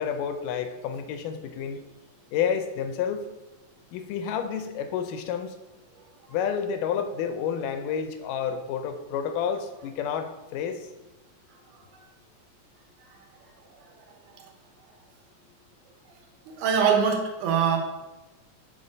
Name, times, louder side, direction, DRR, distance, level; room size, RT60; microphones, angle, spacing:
voice 1, 0.0-1.8 2.3-3.3 3.9-5.5 6.3-10.9, left 7 dB, 85° left, 9 dB, 2.2 m, -30 dB
voice 2, 16.5-17.8, right 6 dB, 80° right, 3 dB, 2.5 m, -23 dB
5.5 x 5.3 x 5.1 m, 1.1 s
omnidirectional pair, 3.7 m